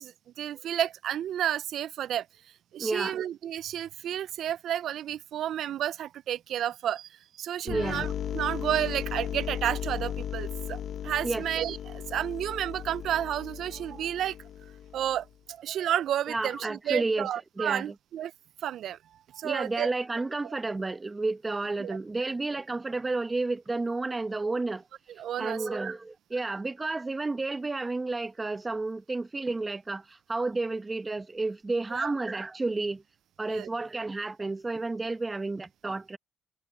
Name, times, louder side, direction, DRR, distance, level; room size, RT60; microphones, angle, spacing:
voice 1, 0.0-2.3 2.7-7.1 7.4-14.4 14.9-18.3 18.6-19.0 19.3-19.9 21.8-22.0 25.2-25.7 31.9-32.1 33.5-33.7, right 11 dB, 75° right, 0.3 m, -31 dB
voice 2, 2.8-3.2 7.6-8.0 11.2-11.4 16.3-17.3 17.6-17.9 19.4-24.8 25.4-33.0 33.4-36.2, right 3 dB, 20° right, 0.9 m, -31 dB
sound 1, 7.7-15.3, left 9 dB, 65° left, 0.7 m, -36 dB
cardioid pair, 90°, 0 cm